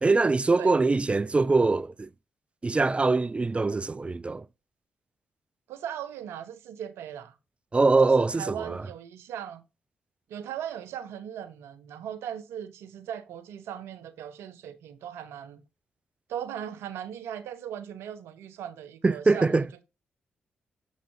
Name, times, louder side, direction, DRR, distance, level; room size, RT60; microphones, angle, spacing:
voice 1, 0.0-2.1 2.6-4.5 7.7-8.8 19.0-19.7, right 3 dB, 25° right, 0.3 m, -23 dB
voice 2, 5.7-7.4 8.0-9.6 10.3-15.6 16.3-19.8, right 9 dB, 80° right, 0.8 m, -38 dB
7.3 x 4.1 x 4.5 m
hypercardioid pair, 45°, 4 cm